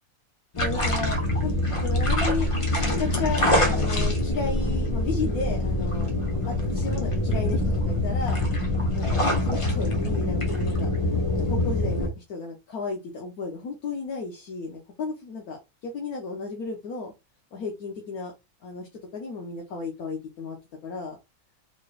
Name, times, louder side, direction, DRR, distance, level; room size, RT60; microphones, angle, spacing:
sound 1, 0.5-12.1, left 1 dB, 30° left, 0.7 m, -24 dB
voice 1, 0.6-1.5 1.8-2.5 2.9-6.1 6.4-8.4 8.9-10.9 11.5-17.1 17.5-18.3 18.6-21.2, left 4 dB, 70° left, 0 dB, 1.3 m, -34 dB
3.8 x 3.1 x 2.4 m, 0.23 s
omnidirectional pair, 1.7 m